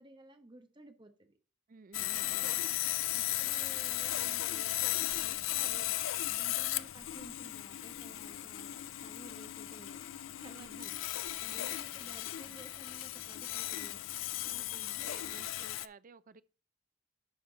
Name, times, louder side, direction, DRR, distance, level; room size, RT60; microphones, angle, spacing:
voice 1, 0.0-1.4 2.0-2.7 3.1-4.7 5.2-5.9 6.3-10.0 10.4-14.0 14.4-15.5, right 1 dB, 25° right, 1.1 m, -55 dB
voice 2, 1.7-2.6 8.3-8.5 10.5-10.9 14.6-16.4, right 4 dB, 45° right, 0.5 m, -55 dB
Sawing, 1.9-15.9, left 15 dB, 75° left, 0.4 m, -36 dB
11.5 x 4.4 x 4.0 m
head